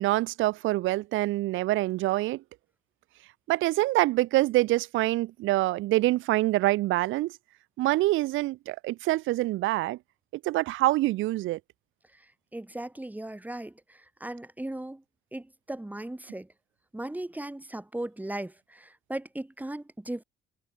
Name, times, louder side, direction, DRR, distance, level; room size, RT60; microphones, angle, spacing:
voice 1, 0.0-2.4 3.5-7.4 7.8-10.0 10.3-11.6, right 18 dB, 80° right, 0.4 m, -25 dB
voice 2, 12.1-15.0 15.3-16.5 16.9-20.2, right 1 dB, 10° right, 1.8 m, -37 dB
cardioid pair, 90°, 20 cm